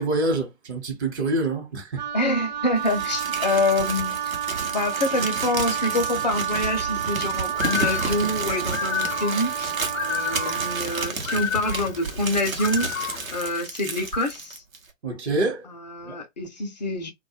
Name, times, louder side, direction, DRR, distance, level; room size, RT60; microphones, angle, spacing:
voice 1, 0.0-2.0 15.0-15.6 16.0-16.1, right 2 dB, 55° right, 1.0 m, -26 dB
Wind instrument woodwind instrument, 2.0-11.1, right 9 dB, 35° right, 0.5 m, -30 dB
voice 2, 2.1-4.4 4.7-14.6 15.6-17.1, left 2 dB, 35° left, 0.4 m, -26 dB
Crumpling crinkling, 2.8-14.9, right 4 dB, 85° right, 0.8 m, -32 dB
Bird, 7.5-13.5, left 8 dB, 75° left, 0.6 m, -31 dB
2.3 x 2.1 x 2.9 m
figure-of-eight pair, 120°, 40 cm